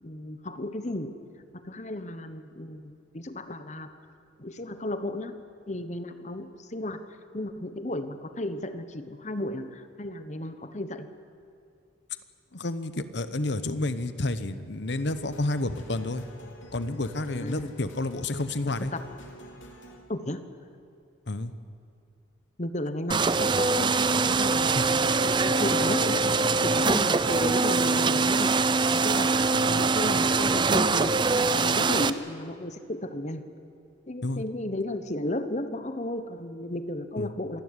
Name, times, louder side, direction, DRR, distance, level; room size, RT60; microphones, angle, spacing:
voice 1, 0.0-1.2 1.5-3.9 4.4-5.3 5.7-7.1 7.3-11.1 17.3-17.7 18.8-19.1 20.1-20.4 22.6-28.6 28.9-31.3 31.6-33.4 34.1-37.6, left 1 dB, 35° left, 11 dB, 1.1 m, -34 dB
voice 2, 12.5-16.2 16.7-18.9 21.3-21.5 24.7-24.9 29.5-29.8 34.2-34.4 37.2-37.3, left 2 dB, 60° left, 12 dB, 1.0 m, -30 dB
sound 1, 14.9-20.0, left 2 dB, 75° left, 3.3 m, -47 dB
sound 2, 23.1-32.1, right 4 dB, 25° right, 0.5 m, -23 dB
26.5 x 12.5 x 9.8 m, 2.4 s
head